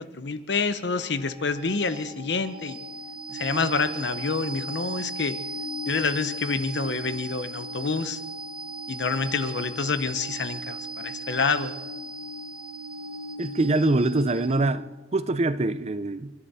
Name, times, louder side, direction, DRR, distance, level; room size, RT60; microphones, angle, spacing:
voice 1, 0.0-2.8 3.3-5.4 5.9-8.2 8.9-11.7, left 4 dB, 65° left, 0.9 m, -27 dB
sound 1, 1.0-14.9, right 1 dB, 55° right, 1.6 m, -36 dB
voice 2, 13.4-16.3, right 2 dB, 35° right, 0.5 m, -24 dB
29.0 x 11.0 x 4.2 m
head